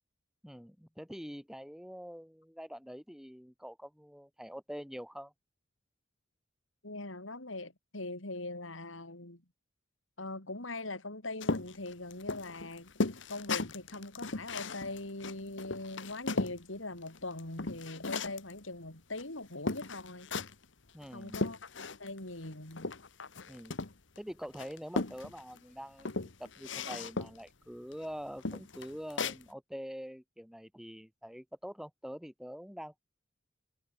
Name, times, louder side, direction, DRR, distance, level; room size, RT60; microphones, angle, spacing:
voice 1, 0.4-5.3 20.9-21.5 23.5-23.8 24.2-26.1 26.4-33.0, equal, ahead, 6.2 m, -45 dB
voice 2, 6.8-9.4 10.2-12.9 13.3-20.3 21.1-21.6 22.0-22.9, left 2 dB, 85° left, 5.4 m, -41 dB
sound 1, 11.4-16.6 17.0-18.5 19.2-19.3 19.7-20.6 21.0-22.2 22.4-24.2 24.5-25.6 26.0-27.5 27.9-28.1 28.4-29.4, left 3 dB, 65° left, 1.5 m, -36 dB
head